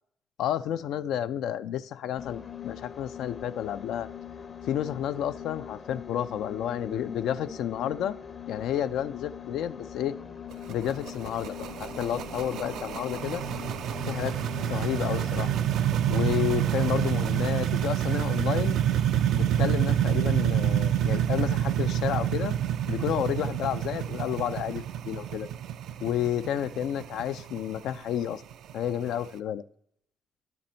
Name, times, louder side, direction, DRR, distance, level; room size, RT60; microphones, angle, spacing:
voice 1, 0.4-4.1 4.7-8.2 8.5-10.2 10.7-13.4 14.1-14.4 14.7-15.5 16.1-18.8 19.3-22.5 22.9-25.5 26.0-28.4 28.7-29.6, left 10 dB, 85° left, 12 dB, 0.3 m, -31 dB
sound 1, 2.2-15.7, left 8 dB, 45° left, 0.6 m, -42 dB
sound 2, 10.5-29.3, right 10 dB, 80° right, 0.3 m, -28 dB
11.0 x 4.0 x 4.3 m, 0.69 s
cardioid pair, 90°, 0 cm